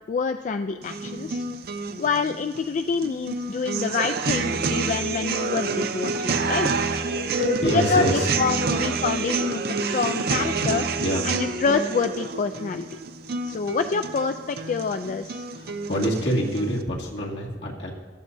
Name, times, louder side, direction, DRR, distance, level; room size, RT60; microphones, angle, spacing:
voice 1, 0.1-1.4 2.0-6.7 7.3-10.9 11.2-12.9 13.4-15.5, left 5 dB, 45° left, 8 dB, 0.3 m, -27 dB
sound 1, 0.8-16.8, right 4 dB, 60° right, 0.6 m, -28 dB
voice 2, 7.3-8.3 11.0-11.3 15.6-17.9, equal, 75° left, -3 dB, 2.1 m, -26 dB
13.5 x 13.0 x 2.7 m, 1.4 s
head